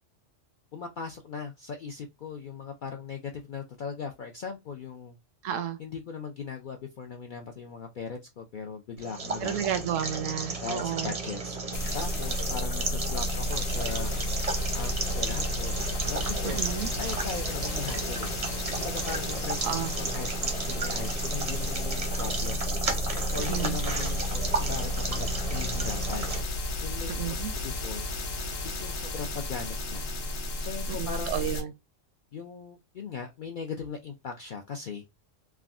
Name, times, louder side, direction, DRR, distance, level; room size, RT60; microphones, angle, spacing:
voice 1, 0.7-5.2 5.8-9.8 10.6-11.6 11.9-14.1 14.7-15.8 16.1-16.6 17.0-18.3 18.7-22.6 23.3-26.3 26.8-28.1 28.6-30.0 30.6-31.6 32.3-35.0, left 5 dB, 70° left, 0.5 m, -39 dB
voice 2, 5.4-5.8 9.4-11.1 16.4-16.9 19.6-19.9 23.4-23.8 27.1-27.5 30.9-31.7, right 9 dB, 80° right, 0.9 m, -32 dB
sound 1, 9.0-26.4, right 4 dB, 40° right, 0.5 m, -33 dB
sound 2, 11.7-31.6, left 1 dB, 85° left, 1.2 m, -32 dB
3.5 x 2.1 x 2.3 m
omnidirectional pair, 1.3 m